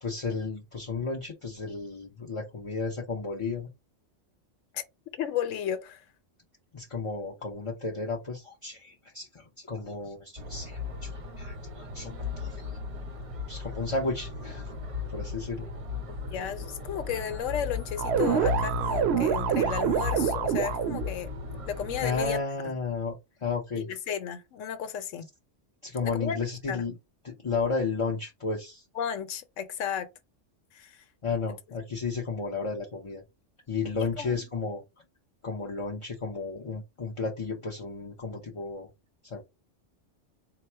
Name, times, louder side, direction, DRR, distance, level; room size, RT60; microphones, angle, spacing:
voice 1, 0.0-3.7 6.7-11.1 11.4-12.7 13.5-14.7 15.1-15.7 22.0-23.9 25.8-26.9 27.2-28.8 31.2-33.2 33.7-34.8 35.4-38.9 39.2-39.4, left 4 dB, 35° left, 0.6 m, -33 dB
voice 2, 5.2-6.0 16.3-21.3 21.7-22.7 23.8-25.3 26.0-26.4 26.7-26.9 28.9-30.1 30.7-31.0 33.9-34.5, left 8 dB, 90° left, 1.0 m, -34 dB
sound 1, 10.4-22.4, left 4 dB, 40° right, 0.5 m, -37 dB
sound 2, 18.0-21.1, right 6 dB, 65° right, 0.8 m, -26 dB
4.0 x 2.0 x 4.3 m
omnidirectional pair, 1.3 m